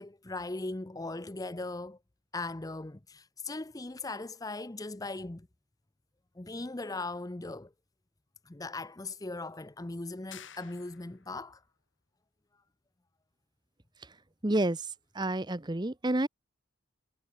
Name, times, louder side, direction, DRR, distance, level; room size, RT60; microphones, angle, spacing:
voice 1, 0.0-2.0 2.3-5.5 6.4-7.7 8.5-11.6, left 2 dB, 15° left, 0.6 m, -39 dB
sound 1, 10.3-11.4, left 9 dB, 60° left, 5.0 m, -50 dB
voice 2, 14.4-14.9 15.1-16.3, right 1 dB, 20° right, 0.8 m, -29 dB
head